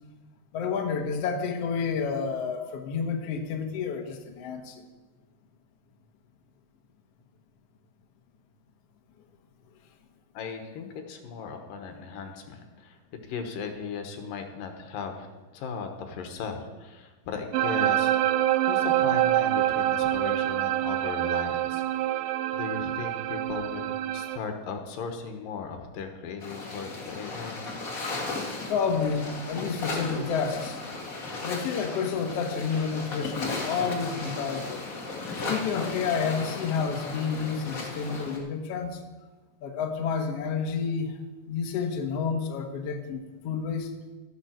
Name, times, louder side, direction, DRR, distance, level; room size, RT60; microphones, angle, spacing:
voice 1, 0.5-4.8 28.7-30.8 31.4-34.8 35.5-39.0 39.6-41.1 41.5-43.9, left 6 dB, 60° left, 4 dB, 1.8 m, -30 dB
voice 2, 10.3-15.3 15.5-18.2 18.7-27.6, left 5 dB, 85° left, 5 dB, 2.9 m, -37 dB
sound 1, 17.5-24.4, right 13 dB, 85° right, 2.2 m, -26 dB
sound 2, 26.4-38.4, left 3 dB, 40° left, 1.3 m, -35 dB
13.0 x 11.5 x 4.5 m, 1.2 s
omnidirectional pair, 3.9 m